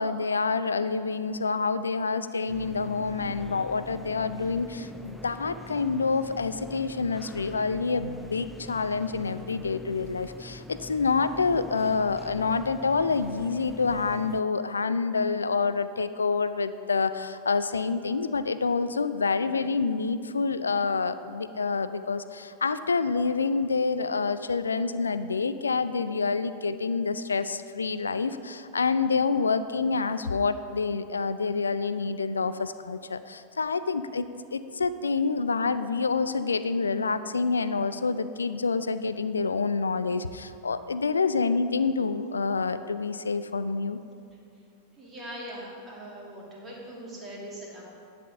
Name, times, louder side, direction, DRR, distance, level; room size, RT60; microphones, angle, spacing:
voice 1, 0.0-34.3 34.5-44.0, left 4 dB, 75° left, 13 dB, 0.3 m, -27 dB
sound 1, 2.5-14.4, left 1 dB, ahead, 0.4 m, -44 dB
voice 2, 45.0-47.8, right 1 dB, 15° right, -5 dB, 2.5 m, -41 dB
11.0 x 4.3 x 7.0 m, 2.5 s
figure-of-eight pair, 90°, 0 cm